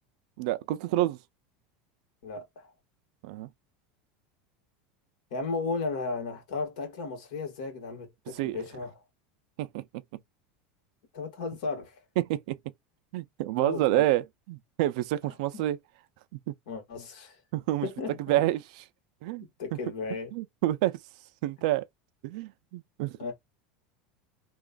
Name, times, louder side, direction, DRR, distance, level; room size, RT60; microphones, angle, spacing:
voice 1, 0.4-1.2 3.2-3.5 8.3-8.6 9.6-9.8 12.2-12.6 13.1-15.8 16.3-16.4 17.5-17.9 18.3-18.8 19.2-19.5 20.3-21.0 21.4-21.8 22.2-23.2, right 15 dB, 65° right, 0.4 m, -28 dB
voice 2, 2.2-2.7 5.3-8.9 11.1-11.9 13.6-14.0 15.2-15.6 16.7-17.4 17.8-18.5 19.6-20.3 23.2-23.3, left 4 dB, 75° left, 1.6 m, -35 dB
2.9 x 2.4 x 2.3 m
supercardioid pair, 150°, 4 cm